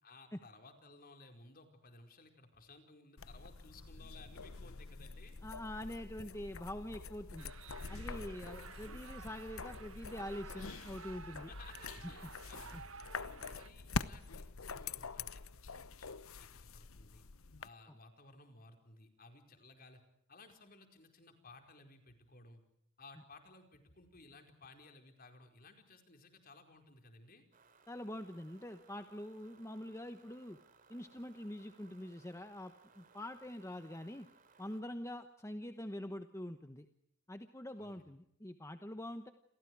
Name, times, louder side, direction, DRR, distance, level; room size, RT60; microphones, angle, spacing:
voice 1, 0.0-5.4 8.2-8.5 11.5-12.9 13.1-17.2 17.6-20.0 20.3-22.6 23.0-27.4 37.8-38.1, left 3 dB, 40° left, 5 dB, 4.8 m, -58 dB
sound 1, 3.2-17.7, left 4 dB, 75° left, 1.0 m, -45 dB
voice 2, 5.4-7.5 7.9-11.5 12.7-12.8 27.9-30.6 30.9-34.3 34.6-36.9 37.3-39.3, left 1 dB, 15° left, 8 dB, 1.1 m, -45 dB
sound 2, 7.4-13.7, right 6 dB, 65° right, 1.2 m, -54 dB
sound 3, 27.5-34.8, right 4 dB, 40° right, 2.8 m, -66 dB
29.0 x 28.5 x 4.8 m, 0.73 s
head